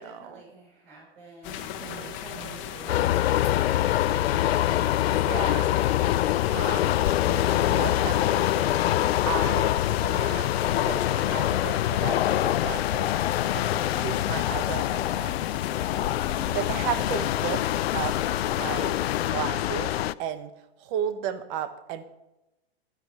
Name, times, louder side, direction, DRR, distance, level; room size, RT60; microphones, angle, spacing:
voice 1, 0.0-4.5 6.9-7.1 13.7-14.3 16.2-17.6, right 3 dB, 65° right, -4 dB, 5.2 m, -48 dB
sound 1, 1.4-19.3, left 10 dB, 40° left, 1.3 m, -38 dB
voice 2, 1.8-2.6 5.2-5.7 6.4-15.4 16.5-17.7 17.9-18.2 18.6-19.0 19.3-20.5 20.8-22.1, right 9 dB, 45° right, 11 dB, 1.4 m, -35 dB
sound 2, 2.9-20.1, left 13 dB, 70° left, 0.5 m, -25 dB
13.5 x 9.9 x 4.9 m, 0.93 s
hypercardioid pair, 110°, 31 cm